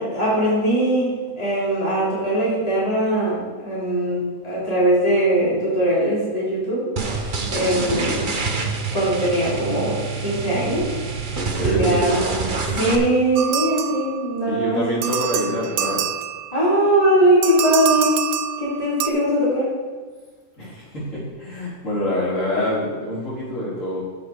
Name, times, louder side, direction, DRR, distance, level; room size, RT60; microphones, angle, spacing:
voice 1, 0.0-6.8 7.5-8.3 8.9-10.9 11.6-14.8 16.5-18.2 18.6-19.7, right 1 dB, 25° left, -8 dB, 3.4 m, -21 dB
sound 1, 7.0-13.0, right 4 dB, 40° right, 1.0 m, -26 dB
voice 2, 11.3-12.0 14.4-16.1 20.6-24.0, left 1 dB, 60° left, -8 dB, 4.1 m, -26 dB
sound 2, 13.4-14.5 15.0-16.7 17.4-19.1, right 9 dB, 80° right, 1.1 m, -26 dB
15.0 x 5.9 x 4.7 m, 1.4 s
omnidirectional pair, 1.5 m